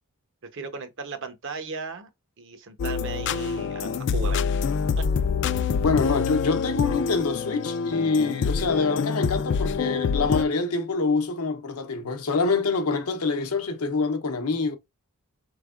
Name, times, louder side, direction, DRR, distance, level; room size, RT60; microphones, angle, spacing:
voice 1, 0.5-2.1 2.4-4.4 5.0-5.1, right 4 dB, 55° right, 0.8 m, -36 dB
sound 1, 2.8-10.4, left 6 dB, 55° left, 0.3 m, -26 dB
voice 2, 5.8-14.8, left 4 dB, 80° left, 0.7 m, -25 dB
4.3 x 3.3 x 2.4 m
head